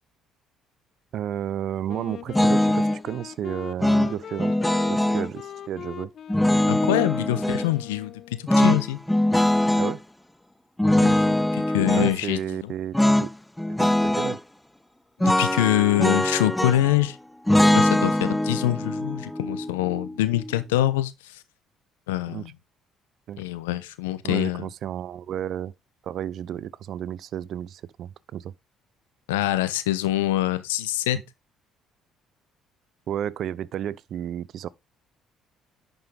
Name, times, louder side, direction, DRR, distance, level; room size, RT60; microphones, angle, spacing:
voice 1, 1.1-4.5 4.9-6.1 9.8-10.0 11.9-13.3 13.8-14.4 22.3-22.5 23.3-23.4 24.2-25.7 26.0-28.5 33.1-34.7, right 10 dB, 60° right, 0.5 m, -32 dB
Wind instrument woodwind instrument, 1.9-8.5, left 9 dB, 55° left, 0.6 m, -40 dB
sound 1, 2.3-3.0 3.8-5.3 6.3-7.7 8.5-10.0 10.8-12.1 12.9-13.3 13.6-14.4 15.2-17.0 17.5-20.5, left 1 dB, 5° left, 0.4 m, -22 dB
voice 2, 6.7-8.1 8.4-9.0 10.9-12.7 15.2-17.2 17.7-21.4 22.1-22.5 23.4-24.7 29.3-31.2, left 14 dB, 80° left, 0.9 m, -25 dB
10.5 x 5.4 x 3.8 m
hypercardioid pair, 55°, 0 cm